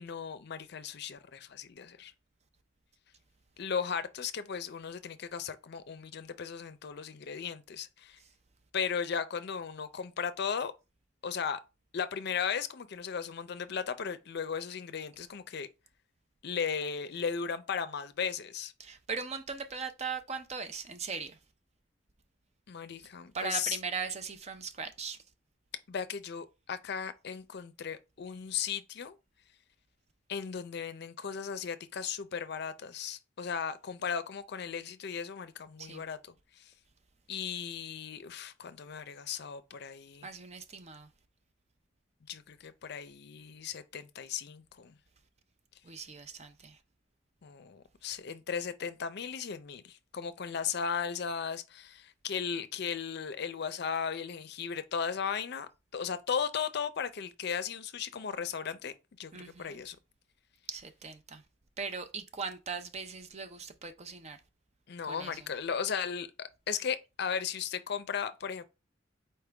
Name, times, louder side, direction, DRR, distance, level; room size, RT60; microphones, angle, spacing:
voice 1, 0.0-2.1 3.6-8.2 8.7-10.7 11.2-11.6 11.9-15.7 16.4-18.7 22.7-23.8 25.9-29.1 30.3-36.2 36.6-36.7 37.3-40.3 42.3-44.9 47.4-59.3 59.6-60.0 64.9-68.6, left 6 dB, 60° left, 0.5 m, -36 dB
voice 2, 18.8-21.4 23.3-25.2 35.8-36.0 40.2-41.1 45.8-46.8 59.3-59.8 60.7-61.4 61.8-64.4 65.0-65.5, right 5 dB, 35° right, 0.5 m, -39 dB
4.3 x 3.6 x 3.3 m
head